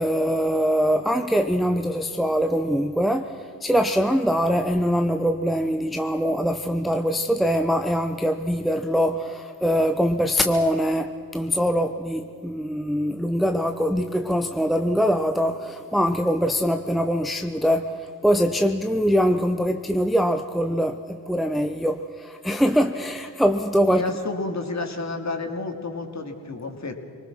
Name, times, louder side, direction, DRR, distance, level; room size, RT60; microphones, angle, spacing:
voice 1, 0.0-24.0, equal, ahead, 7 dB, 0.9 m, -23 dB
voice 2, 23.9-26.9, left 3 dB, 35° left, 4 dB, 3.0 m, -30 dB
26.0 x 20.0 x 6.3 m, 2.4 s
hypercardioid pair, 45°, 45 cm